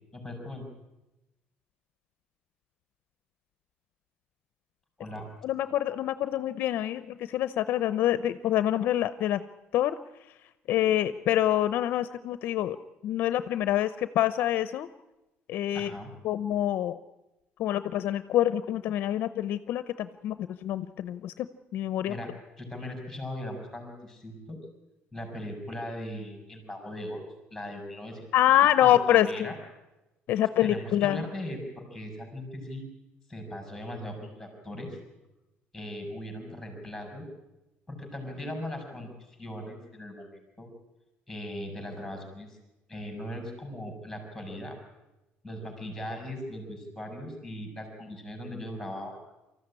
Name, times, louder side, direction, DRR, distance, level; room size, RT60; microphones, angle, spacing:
voice 1, 0.1-0.6 5.0-5.3 15.7-16.1 22.1-22.3 22.6-24.6 25.1-27.2 27.5-28.3 28.8-29.6 30.6-32.8 33.3-35.0 35.7-37.3 37.9-39.1 39.4-40.7 41.3-42.6 42.9-44.8 45.4-49.2, left 1 dB, ahead, 3 dB, 5.5 m, -39 dB
voice 2, 5.4-9.4 9.7-10.0 10.7-12.8 13.0-14.9 15.5-15.9 16.2-17.0 17.6-21.5 21.7-22.1 28.3-29.5 30.3-31.2, left 12 dB, 55° left, 13 dB, 0.7 m, -26 dB
25.0 x 14.5 x 9.7 m, 0.99 s
cardioid pair, 170°, 4 cm